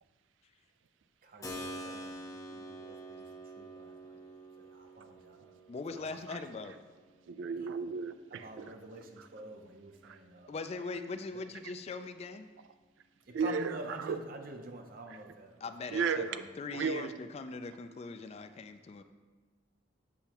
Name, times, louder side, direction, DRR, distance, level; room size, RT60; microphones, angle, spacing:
voice 1, 1.2-3.3 3.6-4.3 4.6-5.5 6.0-6.1 8.3-10.6 13.3-15.6 16.1-16.2, right 2 dB, 50° right, 4 dB, 0.7 m, -47 dB
Keyboard (musical), 1.4-10.0, equal, 15° left, 0.7 m, -48 dB
voice 2, 5.7-6.8 10.5-12.5 15.6-19.0, left 3 dB, 35° left, 9 dB, 0.3 m, -41 dB
voice 3, 7.3-8.7 9.2-9.3 10.0-10.2 13.3-14.2 15.9-16.4 16.7-17.1, right 5 dB, 85° right, 11 dB, 0.3 m, -34 dB
8.5 x 5.6 x 2.9 m, 1.4 s
head